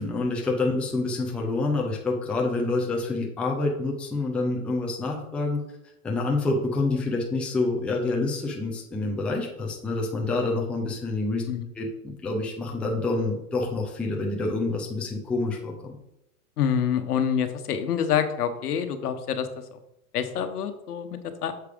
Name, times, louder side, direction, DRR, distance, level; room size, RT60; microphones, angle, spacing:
voice 1, 0.0-5.6 6.0-11.4 11.7-15.9, left 2 dB, 5° left, -1 dB, 0.5 m, -27 dB
voice 2, 16.6-19.5 20.1-21.5, left 8 dB, 80° left, 9 dB, 1.1 m, -26 dB
6.7 x 4.7 x 5.1 m, 0.85 s
hypercardioid pair, 140°, 45 cm